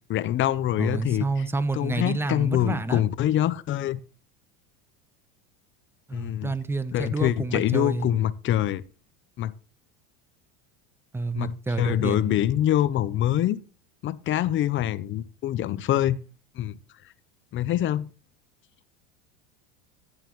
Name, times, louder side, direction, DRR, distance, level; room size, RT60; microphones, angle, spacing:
voice 1, 0.1-1.2 1.7-4.0 6.1-6.5 6.9-8.8 9.4-9.5 11.3-13.6 14.0-16.2 16.6-16.8 17.5-18.1, left 12 dB, 35° left, 0.6 m, -25 dB
voice 2, 0.8-3.0 6.1-8.1 11.1-12.4, right 3 dB, 5° right, 0.7 m, -29 dB
14.5 x 9.8 x 3.1 m
supercardioid pair, 120°, 36 cm